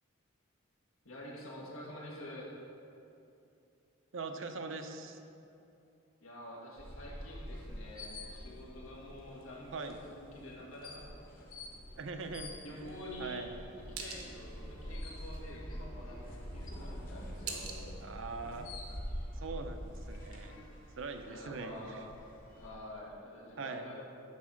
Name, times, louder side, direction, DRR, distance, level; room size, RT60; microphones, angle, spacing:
voice 1, 1.1-2.5 6.2-11.1 12.6-13.5 14.0-17.9 21.3-22.0 22.6-24.0, left 1 dB, 85° left, -3 dB, 1.8 m, -47 dB
voice 2, 4.1-5.2 9.7-10.0 12.0-12.6 13.2-13.5 18.0-18.7 19.3-20.6 20.9-22.0 23.6-23.9, right 4 dB, 65° right, 6 dB, 0.6 m, -42 dB
sound 1, 6.8-22.7, equal, 40° left, 1.1 m, -46 dB
sound 2, 12.7-18.7, right 5 dB, 85° right, 1.1 m, -49 dB
9.4 x 4.1 x 6.4 m, 2.7 s
head